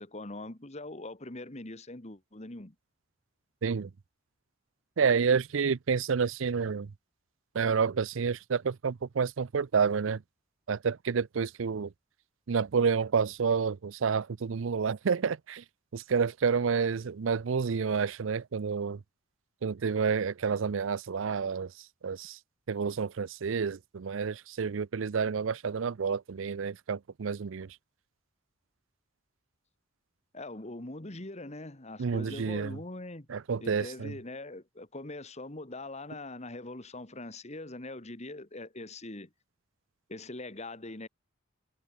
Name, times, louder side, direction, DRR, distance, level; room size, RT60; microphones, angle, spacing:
voice 1, 0.0-2.7 30.3-33.3 33.6-39.3 40.1-41.1, left 2 dB, 35° left, 1.8 m, -42 dB
voice 2, 5.0-6.9 7.5-10.2 10.7-11.9 12.5-15.6 15.9-19.0 19.6-21.7 22.0-22.4 22.7-27.8 32.0-32.8 33.3-34.1, right 6 dB, 70° right, 0.5 m, -29 dB
head